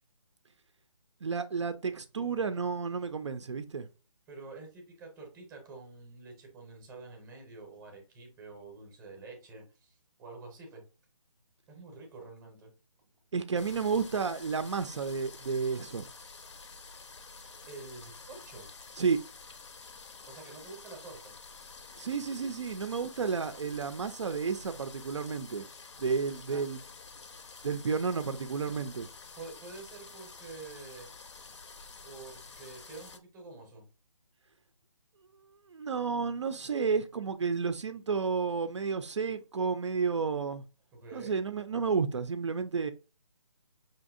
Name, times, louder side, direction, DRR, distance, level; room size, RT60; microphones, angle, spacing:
voice 1, 1.2-3.9 13.3-16.0 19.0-19.2 22.0-25.6 26.0-26.8 27.6-29.1 35.7-40.6 41.1-42.9, right 5 dB, 55° right, 0.4 m, -31 dB
voice 2, 4.3-10.8 11.7-12.7 17.7-18.7 20.3-21.3 26.5-26.6 29.3-31.1 32.0-33.9 40.9-41.4, right 3 dB, 10° right, 0.7 m, -48 dB
sound 1, 13.6-33.2, left 4 dB, 55° left, 0.6 m, -49 dB
5.6 x 2.6 x 2.5 m
hypercardioid pair, 165°, 18 cm